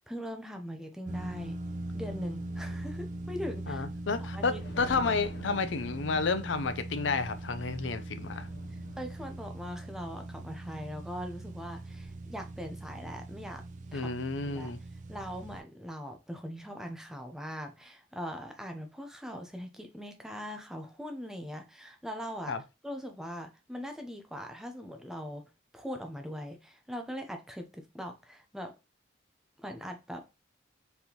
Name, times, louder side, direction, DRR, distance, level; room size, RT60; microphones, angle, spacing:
voice 1, 0.0-1.6 1.9-3.8 4.2-4.6 8.7-13.6 13.9-14.1 14.4-14.7 15.1-22.6 22.8-25.4 25.7-28.7 29.6-30.2, equal, 5° right, 0.6 m, -41 dB
sound 1, 1.0-15.6, right 1 dB, 40° right, 0.4 m, -41 dB
voice 2, 3.7-8.5 13.9-14.8 22.5-22.6, left 4 dB, 90° left, 0.6 m, -31 dB
sound 2, 4.4-9.9, left 1 dB, 55° left, 0.8 m, -49 dB
4.3 x 3.5 x 2.9 m
head